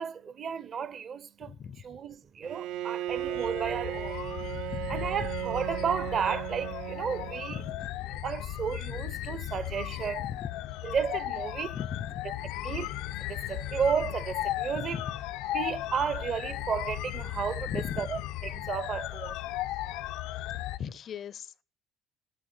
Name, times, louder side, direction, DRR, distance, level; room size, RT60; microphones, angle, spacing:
voice 1, 0.0-4.2 4.9-7.6 8.2-10.3 10.8-11.8 12.6-15.0 15.5-19.7, right 7 dB, 35° right, 0.7 m, -33 dB
voice 2, 1.4-1.8 4.7-5.0 7.5-8.1 10.2-10.5 11.7-12.2 14.8-15.0 17.7-18.0 20.8-21.6, left 8 dB, 35° left, 0.6 m, -38 dB
Bowed string instrument, 2.4-7.9, right 13 dB, 75° right, 0.9 m, -36 dB
sound 1, 3.1-20.8, left 15 dB, 75° left, 0.7 m, -36 dB
10.0 x 9.9 x 9.4 m
cardioid pair, 165°, 0 cm